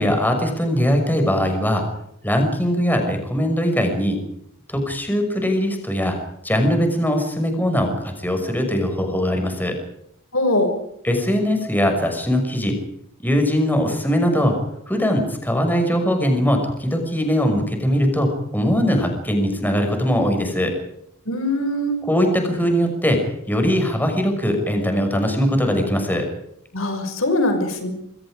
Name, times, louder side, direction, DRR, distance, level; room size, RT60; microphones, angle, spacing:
voice 1, 0.0-1.8 2.2-4.2 4.7-6.2 6.4-9.7 11.0-12.8 13.2-14.5 14.9-20.7 22.1-23.2 23.5-26.3, equal, 10° left, 4 dB, 6.0 m, -21 dB
voice 2, 10.3-10.8 21.3-22.0 26.7-27.9, left 1 dB, 70° left, 6 dB, 6.2 m, -21 dB
27.5 x 24.5 x 5.1 m, 0.74 s
head